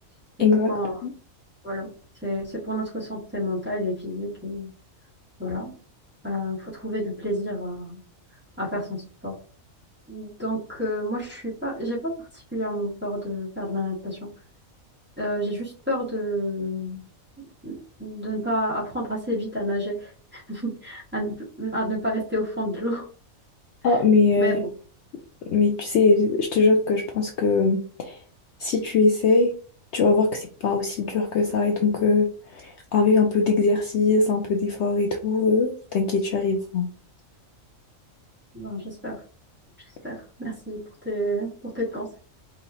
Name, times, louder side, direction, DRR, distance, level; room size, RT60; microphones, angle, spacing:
voice 1, 0.4-0.7 1.0-1.1 23.8-24.6 25.4-28.2 28.6-29.5 29.9-36.9, left 4 dB, 65° left, 3 dB, 0.8 m, -21 dB
voice 2, 2.2-4.7 5.4-5.7 6.2-8.0 8.6-9.3 10.1-14.2 15.2-17.0 17.6-17.7 18.0-23.1 24.4-24.6 38.5-39.1 40.0-40.8 41.0-42.2, equal, 10° right, -7 dB, 1.5 m, -29 dB
5.0 x 2.8 x 2.7 m, 0.41 s
omnidirectional pair, 1.4 m